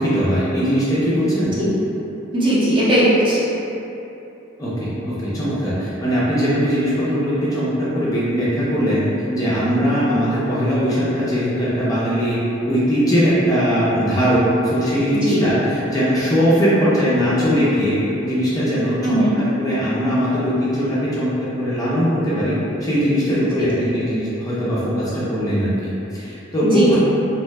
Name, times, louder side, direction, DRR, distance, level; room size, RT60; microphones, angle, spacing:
voice 1, 0.0-1.5 4.6-9.0 9.3-12.4 12.6-18.0 18.2-27.0, equal, 20° left, -10 dB, 0.5 m, -20 dB
voice 2, 2.3-3.4 15.2-15.4 19.0-19.4 23.3-23.6 26.7-26.9, right 1 dB, 25° right, -10 dB, 0.7 m, -18 dB
2.7 x 2.1 x 3.2 m, 3.0 s
head